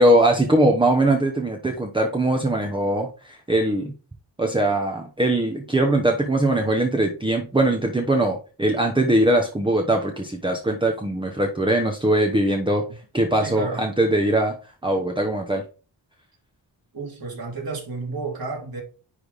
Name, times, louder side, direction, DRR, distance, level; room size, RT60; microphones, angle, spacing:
voice 1, 0.0-3.9 4.4-12.8 13.1-14.6 14.8-15.6, right 1 dB, 10° right, 0.8 m, -21 dB
voice 2, 13.4-13.9 16.9-18.8, right 3 dB, 55° right, 2.8 m, -31 dB
9.9 x 3.5 x 4.0 m
wide cardioid pair, 145°, 44 cm